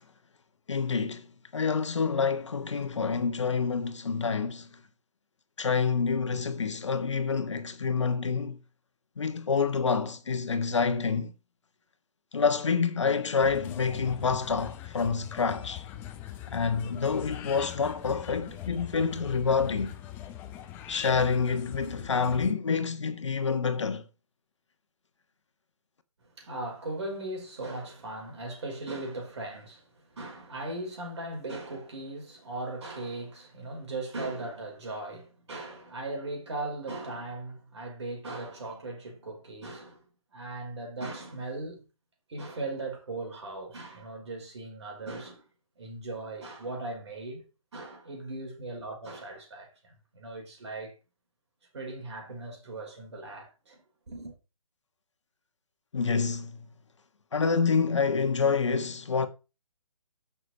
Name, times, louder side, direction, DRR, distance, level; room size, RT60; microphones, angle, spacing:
voice 1, 0.7-4.7 5.6-8.6 9.2-11.3 12.3-15.9 16.5-20.0 20.9-24.0 55.9-56.7 57.3-59.3, left 5 dB, 55° left, 1.4 m, -27 dB
sound 1, 13.4-22.5, left 12 dB, 10° left, 0.6 m, -42 dB
voice 2, 26.4-29.8 30.1-40.0 40.3-41.8 42.3-45.4 45.8-47.5 47.7-50.9 51.7-53.8 54.1-54.3, right 2 dB, 50° right, 5.1 m, -38 dB
12.5 x 6.3 x 4.4 m
figure-of-eight pair, 145°, 18 cm